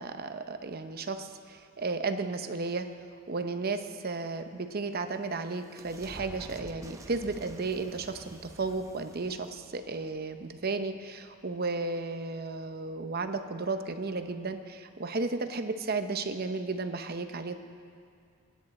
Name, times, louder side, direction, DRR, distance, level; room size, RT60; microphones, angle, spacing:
voice 1, 0.0-2.9 3.3-17.6, right 3 dB, 50° right, 8 dB, 0.8 m, -34 dB
sound 1, 4.6-11.1, right 1 dB, 15° right, 0.7 m, -50 dB
23.0 x 10.5 x 4.3 m, 2.3 s
head